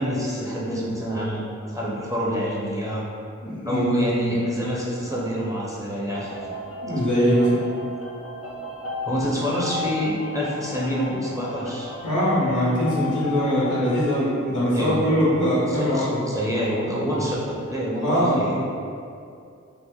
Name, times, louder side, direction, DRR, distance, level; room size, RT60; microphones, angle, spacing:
voice 1, 0.0-1.4 1.7-3.0 3.7-6.5 7.0-7.1 9.0-11.9 14.7-15.0 15.7-18.6, equal, 10° right, -6 dB, 0.4 m, -27 dB
voice 2, 3.4-3.8 6.8-7.6 12.0-16.2 18.0-18.7, equal, 85° left, -9 dB, 0.8 m, -22 dB
sound 1, 6.1-14.0, left 3 dB, 50° left, 0.5 m, -35 dB
2.7 x 2.0 x 2.2 m, 2.4 s
wide cardioid pair, 45°, 29 cm